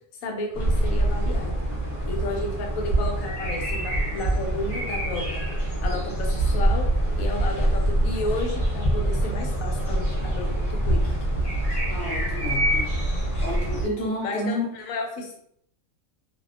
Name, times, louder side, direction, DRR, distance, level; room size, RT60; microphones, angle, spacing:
voice 1, 0.2-1.6 2.1-5.2 5.8-6.9 7.2-11.2 14.2-15.4, left 2 dB, 85° left, 1 dB, 1.0 m, -32 dB
sound 1, 0.5-13.9, right 1 dB, 30° left, 0.9 m, -25 dB
voice 2, 11.9-12.9 13.4-14.7, left 1 dB, 65° left, -2 dB, 0.6 m, -30 dB
2.6 x 2.2 x 2.4 m, 0.68 s
omnidirectional pair, 1.4 m